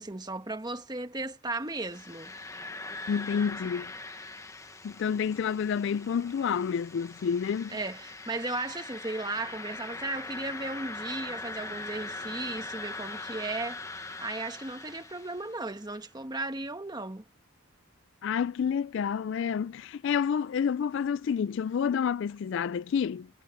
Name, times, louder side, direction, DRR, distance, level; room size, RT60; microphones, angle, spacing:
voice 1, 0.0-2.3 7.7-17.2, right 2 dB, 20° right, 1.2 m, -36 dB
sound 1, 1.7-15.7, left 3 dB, 15° left, 1.0 m, -41 dB
voice 2, 3.1-3.9 4.8-7.8 18.2-23.3, left 7 dB, 55° left, 0.3 m, -29 dB
head